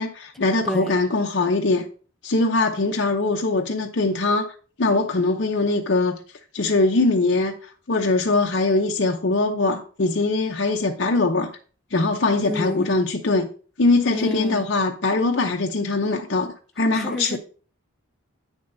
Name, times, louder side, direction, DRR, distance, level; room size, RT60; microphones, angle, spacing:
voice 1, 0.0-1.9 2.2-6.2 6.5-11.5 11.9-13.5 13.8-17.4, left 3 dB, 55° left, 0.7 m, -22 dB
voice 2, 12.4-13.0 14.1-14.7 16.9-17.4, left 1 dB, ahead, 0.7 m, -30 dB
8.8 x 7.0 x 2.7 m
head